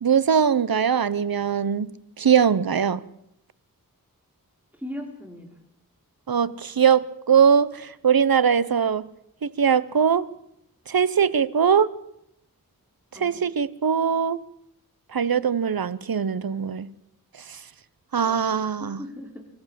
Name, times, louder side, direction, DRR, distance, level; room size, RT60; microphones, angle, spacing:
voice 1, 0.0-1.9 2.2-3.0 6.3-9.1 9.4-10.3 10.9-11.9 13.1-14.4 15.1-16.9 17.5-17.6 18.1-19.0, right 7 dB, 75° right, 0.9 m, -21 dB
voice 2, 4.8-5.6 13.1-13.4 18.2-19.5, left 1 dB, 5° right, 5.2 m, -39 dB
25.5 x 15.0 x 7.6 m
wide cardioid pair, 50°, 36 cm